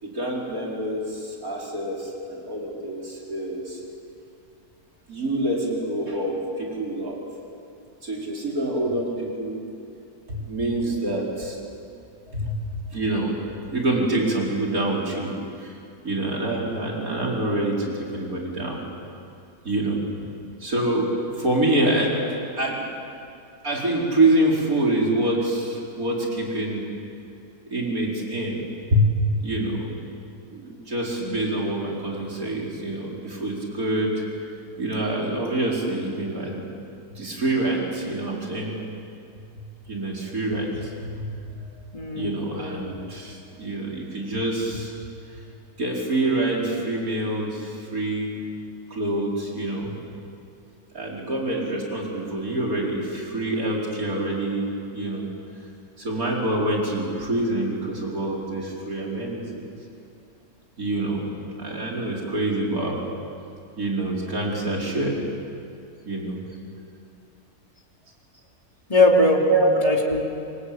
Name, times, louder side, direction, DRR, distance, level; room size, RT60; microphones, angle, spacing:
voice 1, 0.0-3.8 5.1-7.2 8.0-9.6 10.3-11.6 12.3-12.5 12.9-15.3 15.6-15.7 16.0-18.8 19.6-20.0 20.6-22.1 22.6-22.9 23.6-26.8 27.7-28.7 28.9-29.1 29.4-30.0 30.5-34.1 34.8-36.7 37.1-38.8 39.9-41.3 41.5-41.7 42.1-44.9 45.8-48.4 48.9-49.9 50.9-55.3 56.0-59.4 60.8-63.0 63.8-65.3 66.1-66.4 69.5-69.7, right 1 dB, 70° right, -3 dB, 5.2 m, -26 dB
voice 2, 31.2-31.5 41.9-42.3 68.9-69.4 69.8-70.2, left 2 dB, 25° left, 0 dB, 3.0 m, -20 dB
26.5 x 23.5 x 8.8 m, 2.5 s
omnidirectional pair, 1.6 m